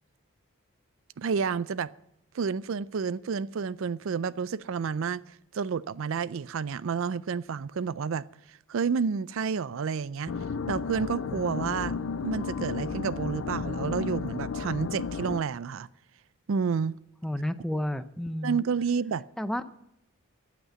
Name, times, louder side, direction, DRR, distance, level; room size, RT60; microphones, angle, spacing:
voice 1, 1.2-1.9 2.3-5.2 5.5-8.2 8.7-10.3 10.7-12.0 12.2-15.9 16.5-17.0 18.4-19.2, right 6 dB, 60° right, 0.4 m, -30 dB
sound 1, 10.3-15.4, left 5 dB, 60° left, 0.4 m, -33 dB
voice 2, 17.2-18.6 19.4-19.6, left 1 dB, ahead, 0.5 m, -31 dB
15.0 x 8.3 x 6.9 m
head